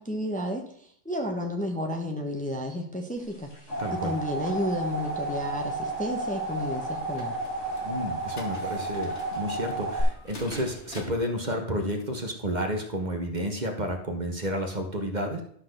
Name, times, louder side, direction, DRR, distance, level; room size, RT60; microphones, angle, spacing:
voice 1, 0.0-3.5 3.9-7.3, equal, 5° left, 2 dB, 1.0 m, -32 dB
sound 1, 3.3-10.0, right 2 dB, 90° left, 3.5 m, -32 dB
voice 2, 3.8-4.1 7.8-15.4, equal, 40° right, 3 dB, 1.3 m, -31 dB
sound 2, 5.1-11.3, left 1 dB, 65° left, 2.0 m, -47 dB
12.0 x 4.0 x 6.6 m, 0.65 s
omnidirectional pair, 1.2 m